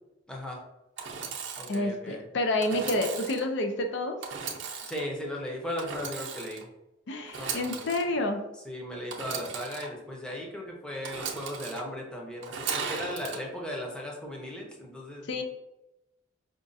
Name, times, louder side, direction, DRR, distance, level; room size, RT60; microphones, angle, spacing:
voice 1, 0.3-0.6 1.6-2.2 4.8-6.7 7.4-7.9 8.6-15.4, equal, 5° left, -2 dB, 0.6 m, -37 dB
Engine / Sawing, 1.0-1.8 2.6-3.4 4.2-5.0 5.8-6.6 7.3-8.0 9.1-9.9 11.0-11.8 12.4-13.4, right 5 dB, 70° right, 0.6 m, -36 dB
voice 2, 1.7-4.2 7.1-8.4 15.3-15.4, left 1 dB, 65° left, 5 dB, 0.5 m, -29 dB
5.1 x 2.3 x 2.5 m, 0.93 s
head